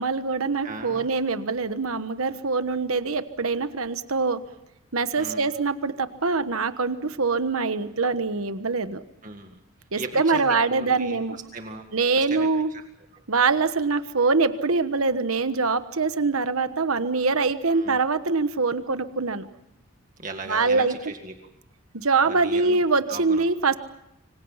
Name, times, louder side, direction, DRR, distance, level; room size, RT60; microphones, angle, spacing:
voice 1, 0.0-4.4 4.9-9.0 9.9-11.4 11.9-12.7 13.3-19.5 20.5-20.9 21.9-23.7, right 4 dB, 90° right, 11 dB, 1.3 m, -24 dB
voice 2, 0.6-1.1 5.2-5.5 9.2-9.6 10.0-11.9 12.2-12.8 17.7-18.0 20.2-21.3 22.2-22.8 23.1-23.4 23.7-23.8, right 3 dB, 40° right, 4 dB, 1.9 m, -38 dB
26.0 x 25.0 x 5.7 m, 0.83 s
head